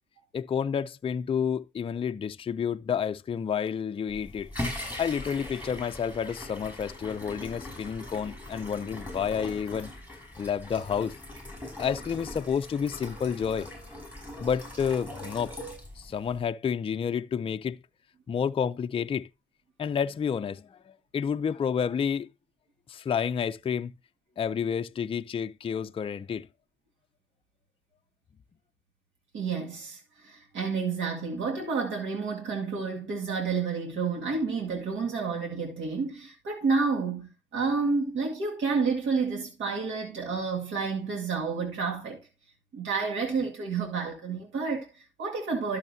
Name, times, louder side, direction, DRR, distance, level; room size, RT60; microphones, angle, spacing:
voice 1, 0.3-4.5 5.0-9.9 10.4-11.1 11.8-13.7 14.4-15.5 16.0-17.8 18.3-19.3 19.8-22.3 22.9-23.9 24.4-26.5, left 7 dB, 30° left, 0.4 m, -30 dB
sound 1, 4.1-16.4, left 1 dB, 5° right, 5.6 m, -40 dB
voice 2, 29.3-42.2 42.7-45.8, right 4 dB, 75° right, 2.1 m, -30 dB
12.0 x 6.4 x 2.7 m
cardioid pair, 90°, 20 cm